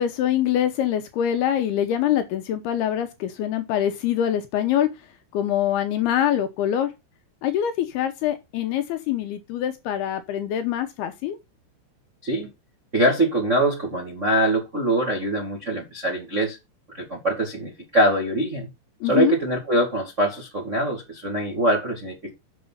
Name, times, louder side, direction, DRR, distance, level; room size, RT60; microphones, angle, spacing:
voice 1, 0.0-4.9 5.3-6.9 7.4-11.4 19.0-19.3, left 10 dB, 75° left, 2.5 m, -24 dB
voice 2, 12.9-16.6 16.9-18.7 19.0-22.3, right 1 dB, 45° right, 0.9 m, -23 dB
7.6 x 6.0 x 5.5 m
omnidirectional pair, 5.2 m